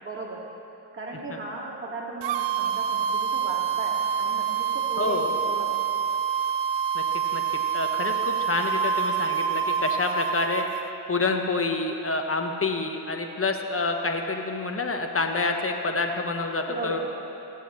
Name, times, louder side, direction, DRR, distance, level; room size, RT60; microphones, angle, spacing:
voice 1, 0.0-0.4 0.9-6.0 16.7-17.0, right 2 dB, 25° right, -4 dB, 2.2 m, -37 dB
sound 1, 2.2-10.8, right 7 dB, 80° right, 0.5 m, -26 dB
voice 2, 5.0-5.3 6.9-7.0 7.3-7.4 7.7-10.6 11.1-17.0, left 3 dB, 30° left, 4 dB, 1.2 m, -27 dB
16.0 x 8.0 x 3.2 m, 2.9 s
cardioid pair, 45°, 43 cm